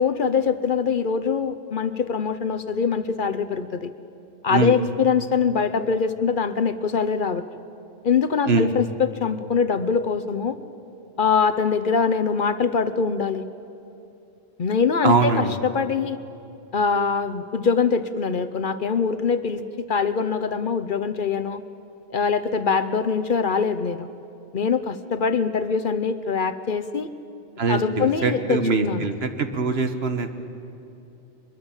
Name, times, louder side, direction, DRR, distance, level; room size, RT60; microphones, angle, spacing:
voice 1, 0.0-3.9 4.4-7.4 8.0-10.6 11.2-13.4 14.6-16.2 16.7-21.6 22.1-24.1 24.5-27.1 27.7-29.1, left 5 dB, 50° left, 10 dB, 0.9 m, -23 dB
voice 2, 15.0-15.5 27.6-30.3, right 4 dB, 65° right, 7 dB, 1.5 m, -22 dB
23.0 x 22.5 x 7.2 m, 2.7 s
omnidirectional pair, 1.1 m